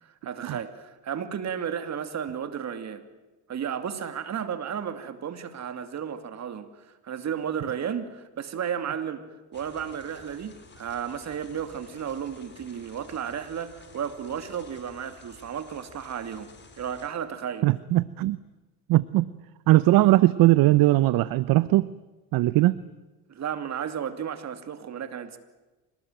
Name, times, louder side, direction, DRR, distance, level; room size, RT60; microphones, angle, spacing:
voice 1, 0.0-3.0 3.5-9.2 9.5-16.5 16.8-17.7 23.3-25.4, right 8 dB, 45° right, 2.7 m, -33 dB
sound 1, 9.5-17.1, left 4 dB, 30° left, 5.1 m, -52 dB
voice 2, 17.6-18.4 18.9-19.3 19.7-21.9 22.3-22.8, right 17 dB, 60° right, 0.8 m, -20 dB
26.0 x 19.5 x 9.2 m
supercardioid pair, 95°, 38 cm